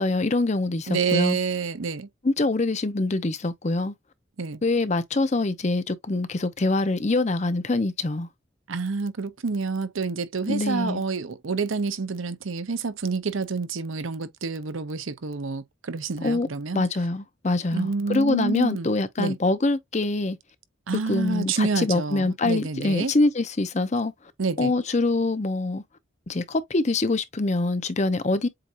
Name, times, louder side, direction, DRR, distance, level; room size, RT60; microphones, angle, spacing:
voice 1, 0.0-1.4 2.2-3.9 4.6-8.3 10.5-11.0 16.2-16.5 16.7-20.4 21.1-24.1 24.6-25.8 26.3-28.5, left 2 dB, 35° left, 0.6 m, -24 dB
voice 2, 0.9-2.1 4.4-4.6 8.7-16.8 17.7-18.9 19.2-19.4 20.9-23.1 24.4-24.7, right 4 dB, 90° right, 0.7 m, -28 dB
7.6 x 2.8 x 2.5 m
head